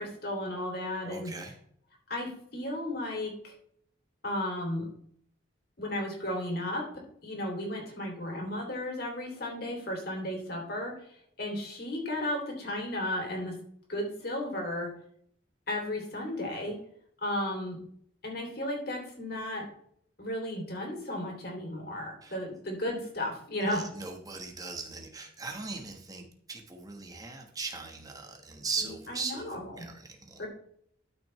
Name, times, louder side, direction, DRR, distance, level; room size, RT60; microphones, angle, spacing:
voice 1, 0.0-1.3 2.1-3.5 4.2-4.9 5.8-6.9 7.2-13.6 13.9-14.9 15.7-16.8 17.2-17.8 18.2-19.7 20.2-23.9 28.8-29.9 30.4-30.5, left 1 dB, 55° left, 0 dB, 3.1 m, -34 dB
voice 2, 1.0-1.5 22.2-22.3 23.7-30.4, right 4 dB, 20° right, 3 dB, 1.4 m, -39 dB
13.0 x 6.1 x 3.2 m, 0.64 s
head